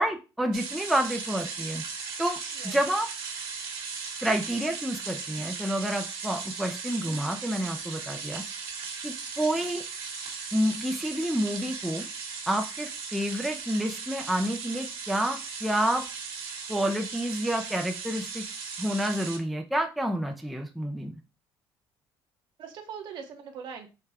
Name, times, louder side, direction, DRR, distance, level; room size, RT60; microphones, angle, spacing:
voice 1, 0.0-1.8 2.2-3.1 4.2-8.4 9.0-9.8 10.5-12.1 12.5-16.0 16.7-18.5 18.8-21.2, right 1 dB, ahead, 3 dB, 0.4 m, -29 dB
sound 1, 0.5-19.4, right 5 dB, 75° right, 1.7 m, -37 dB
voice 2, 9.4-9.8 22.6-23.9, right 7 dB, 60° right, 5 dB, 1.1 m, -42 dB
4.6 x 2.2 x 4.7 m, 0.29 s
cardioid pair, 135°, 9 cm